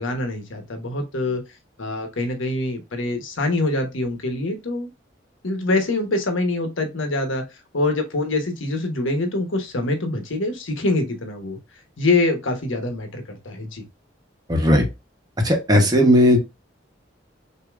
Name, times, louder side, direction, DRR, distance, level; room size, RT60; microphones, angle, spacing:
voice 1, 0.0-1.4 1.8-4.9 5.4-7.4 7.7-11.6 12.0-13.8, left 2 dB, 90° left, 1.1 m, -24 dB
voice 2, 14.5-14.8 15.4-16.4, equal, 20° right, 1.0 m, -16 dB
6.6 x 2.8 x 2.4 m
head